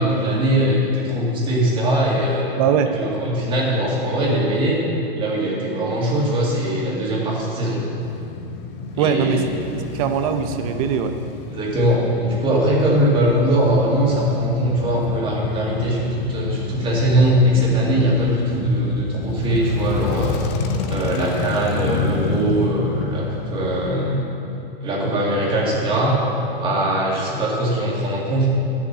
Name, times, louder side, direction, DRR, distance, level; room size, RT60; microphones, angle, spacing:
voice 1, 0.0-2.5 2.9-4.8 5.1-7.8 8.9-9.4 11.5-20.4 20.9-24.3 24.8-26.2 26.6-28.5, right 1 dB, 15° right, -4 dB, 2.2 m, -21 dB
voice 2, 2.6-2.9 9.0-9.7 9.9-11.2, right 8 dB, 35° right, 7 dB, 0.8 m, -21 dB
Male speech man speaking / Motorcycle / Idling, 8.0-24.0, left 4 dB, 30° left, 0.7 m, -28 dB
11.0 x 7.3 x 7.9 m, 2.8 s
supercardioid pair, 160°, 30 cm